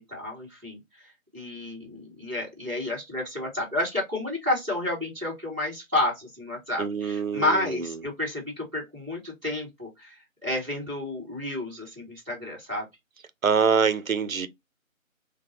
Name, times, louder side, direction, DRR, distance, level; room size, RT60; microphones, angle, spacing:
voice 1, 0.1-0.8 1.3-10.2 10.4-12.9, left 1 dB, 5° right, 1.9 m, -30 dB
voice 2, 6.8-7.9 13.4-14.5, right 6 dB, 75° right, 0.7 m, -25 dB
3.2 x 2.2 x 2.9 m
figure-of-eight pair, 165°, 41 cm